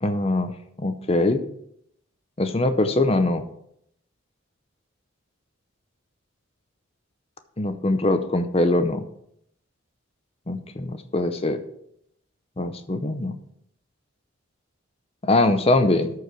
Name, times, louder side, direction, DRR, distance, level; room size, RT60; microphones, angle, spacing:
voice 1, 0.0-0.5 0.8-1.4 2.4-3.4 7.6-9.0 10.5-11.6 12.6-13.3 15.2-16.1, left 2 dB, 30° left, 9 dB, 0.6 m, -22 dB
13.0 x 4.8 x 4.5 m, 0.74 s
head